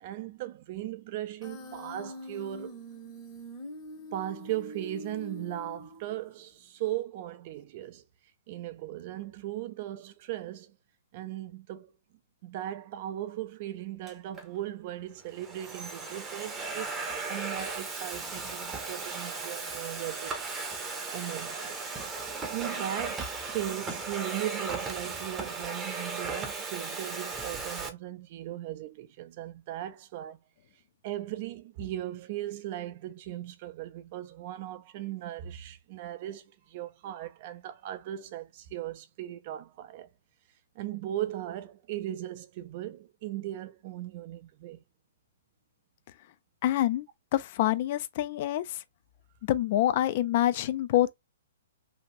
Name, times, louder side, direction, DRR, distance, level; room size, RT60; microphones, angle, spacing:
voice 1, 0.0-2.8 4.1-8.0 8.5-10.8 11.1-11.9 12.4-20.4 21.1-21.8 22.5-30.4 31.0-40.1 40.8-44.8, right 13 dB, 45° right, 0.5 m, -38 dB
Human voice, 1.4-6.4, equal, 25° left, 0.9 m, -44 dB
Domestic sounds home sounds, 14.1-14.5 15.2-27.9, right 4 dB, 15° right, 0.7 m, -36 dB
voice 2, 46.6-47.1 47.3-48.8 49.5-51.1, left 13 dB, 45° left, 0.4 m, -26 dB
2.8 x 2.5 x 3.0 m
hypercardioid pair, 125°, 0 cm